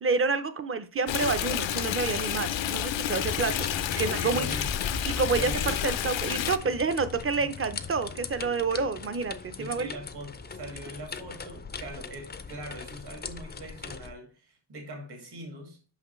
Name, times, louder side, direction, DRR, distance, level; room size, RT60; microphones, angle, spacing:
voice 1, 0.0-3.5 4.0-4.5 5.2-9.9, right 4 dB, 30° right, 11 dB, 0.6 m, -28 dB
Stream, 1.1-6.6, left 11 dB, 85° left, 0.6 m, -30 dB
sound 1, 3.2-14.1, left 5 dB, 25° left, 0.4 m, -38 dB
voice 2, 3.7-4.7 5.3-5.8 7.4-7.5 9.6-15.8, right 1 dB, 60° right, 2 dB, 2.1 m, -41 dB
6.0 x 5.7 x 3.1 m, 0.35 s
wide cardioid pair, 160°, 44 cm